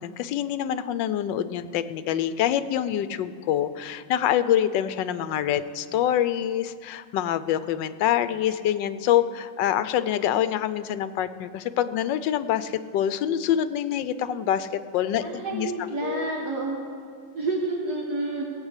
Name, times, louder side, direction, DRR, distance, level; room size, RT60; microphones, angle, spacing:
voice 1, 0.0-14.7 14.9-15.7 16.0-16.3, left 10 dB, 75° left, 13 dB, 1.3 m, -26 dB
voice 2, 15.2-16.8 17.4-18.4, right 2 dB, 60° right, -1 dB, 1.8 m, -29 dB
18.5 x 7.3 x 8.1 m, 2.1 s
omnidirectional pair, 2.0 m